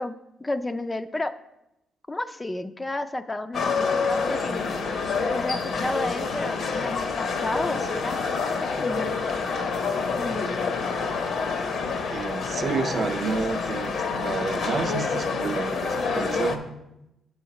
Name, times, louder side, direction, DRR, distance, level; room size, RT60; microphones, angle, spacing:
voice 1, 0.0-1.3 2.1-4.6 5.3-8.2 8.6-9.2 10.1-10.7 14.7-14.8, left 2 dB, 20° left, 10 dB, 0.3 m, -32 dB
sound 1, 3.5-16.6, left 4 dB, 65° left, 0.7 m, -27 dB
voice 2, 12.1-16.6, right 4 dB, 45° right, 7 dB, 0.6 m, -29 dB
7.7 x 5.7 x 4.1 m, 0.89 s
cardioid pair, 90°, 0 cm